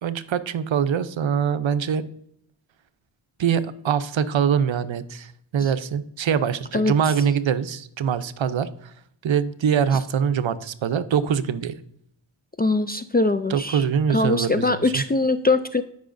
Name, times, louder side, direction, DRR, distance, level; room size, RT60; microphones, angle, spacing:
voice 1, 0.0-2.1 3.4-8.9 9.2-11.8 13.5-15.0, right 7 dB, 65° right, 12 dB, 0.7 m, -23 dB
voice 2, 12.6-13.8 14.1-15.8, left 2 dB, 20° left, 10 dB, 0.3 m, -22 dB
13.5 x 5.6 x 2.6 m, 0.70 s
wide cardioid pair, 85°, 50 cm